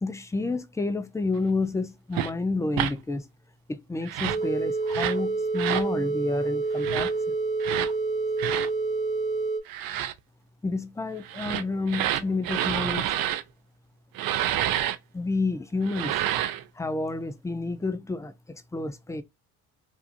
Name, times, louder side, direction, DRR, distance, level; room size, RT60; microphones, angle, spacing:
voice 1, 0.0-3.3 3.7-7.1 10.6-13.0 15.1-16.2 16.8-19.2, left 3 dB, 5° left, 0.4 m, -30 dB
sound 1, 2.1-2.3 2.7-2.9 4.0-4.4 4.9-5.2 5.6-5.9 6.8-7.1 7.6-7.9 8.4-8.7 9.7-10.1 11.2-13.4 14.2-15.0 15.8-16.6, right 12 dB, 55° right, 0.5 m, -28 dB
sound 2, 4.3-9.6, right 3 dB, 25° left, 0.9 m, -28 dB
2.7 x 2.4 x 2.4 m
hypercardioid pair, 60°, 43 cm